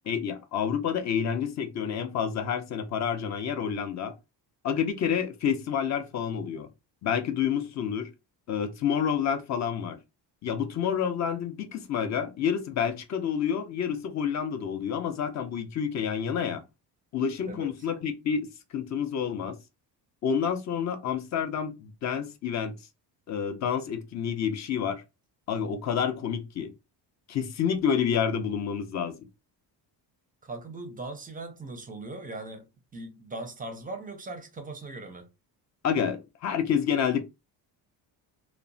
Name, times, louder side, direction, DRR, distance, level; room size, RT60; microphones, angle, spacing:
voice 1, 0.1-4.1 4.6-6.7 7.0-8.1 8.5-10.0 10.4-16.6 17.1-18.5 18.7-19.6 20.2-22.7 23.3-25.0 25.5-26.7 27.3-29.2 35.8-37.2, left 7 dB, 40° left, 0.4 m, -29 dB
voice 2, 30.4-35.3, right 2 dB, 20° right, 0.5 m, -39 dB
2.8 x 2.1 x 2.5 m
cardioid pair, 140°, 45 cm